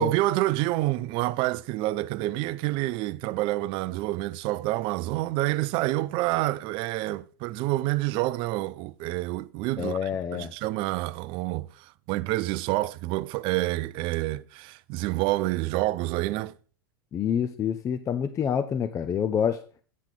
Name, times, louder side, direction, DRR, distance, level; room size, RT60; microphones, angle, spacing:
voice 1, 0.0-10.0 10.3-11.7 12.1-16.5, right 18 dB, 45° right, 0.4 m, -28 dB
voice 2, 9.8-10.5 17.1-19.6, left 8 dB, 25° left, 0.5 m, -27 dB
8.3 x 7.3 x 3.7 m
figure-of-eight pair, 90°, 13 cm